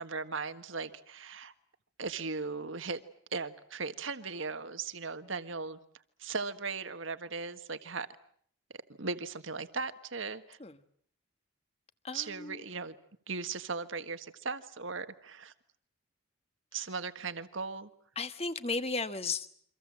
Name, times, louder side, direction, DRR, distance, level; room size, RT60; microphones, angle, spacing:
voice 1, 0.0-1.5 2.0-3.0 3.3-5.8 6.2-8.1 8.7-10.6 12.1-12.9 13.3-15.5 16.7-17.9, right 4 dB, 70° right, 1.6 m, -38 dB
voice 2, 12.0-12.6 16.7-16.9 18.1-19.5, left 4 dB, 30° left, 1.4 m, -35 dB
28.5 x 25.5 x 7.5 m
head